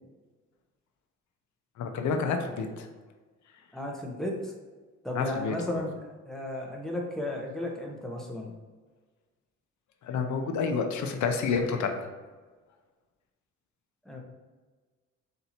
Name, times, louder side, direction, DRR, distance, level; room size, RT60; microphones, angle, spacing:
voice 1, 1.8-2.9 5.1-5.8 10.0-12.1, left 5 dB, 70° left, 5 dB, 0.7 m, -29 dB
voice 2, 3.7-4.5 5.0-8.5 14.0-14.2, left 1 dB, ahead, -1 dB, 0.9 m, -34 dB
4.3 x 2.7 x 4.2 m, 1.4 s
cardioid pair, 90°, 30 cm